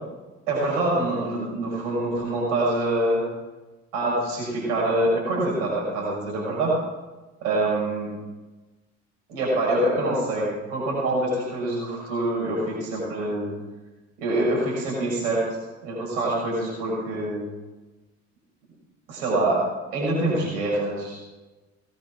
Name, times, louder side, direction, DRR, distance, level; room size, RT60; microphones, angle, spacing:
voice 1, 0.5-3.2 3.9-6.7 7.4-8.1 9.3-13.5 14.2-15.4 15.8-17.4 19.1-19.6 19.9-21.2, right 1 dB, 70° right, -4 dB, 6.3 m, -25 dB
18.5 x 9.4 x 6.2 m, 1.2 s
figure-of-eight pair, 50°, 38 cm